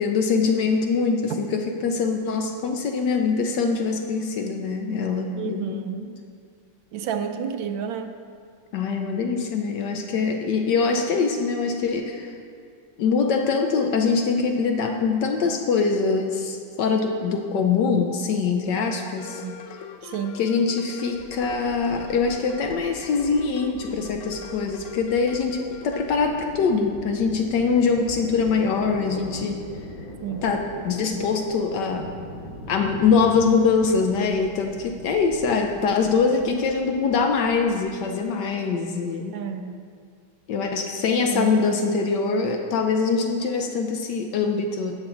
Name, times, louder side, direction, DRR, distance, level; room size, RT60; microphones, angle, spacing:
voice 1, 0.0-5.9 8.7-12.3 13.0-19.4 20.4-29.6 30.4-32.1 32.7-39.4 40.5-44.9, left 5 dB, 70° left, 4 dB, 1.1 m, -23 dB
voice 2, 5.4-6.2 6.9-8.1 19.4-19.5 20.0-20.4 30.2-30.5 39.3-39.8 41.3-41.6, right 7 dB, 75° right, 7 dB, 1.2 m, -30 dB
sound 1, 19.2-26.1, left 6 dB, 90° left, 1.6 m, -41 dB
sound 2, 21.1-38.1, left 1 dB, 45° left, 2.7 m, -42 dB
14.0 x 6.2 x 3.9 m, 2.2 s
omnidirectional pair, 2.2 m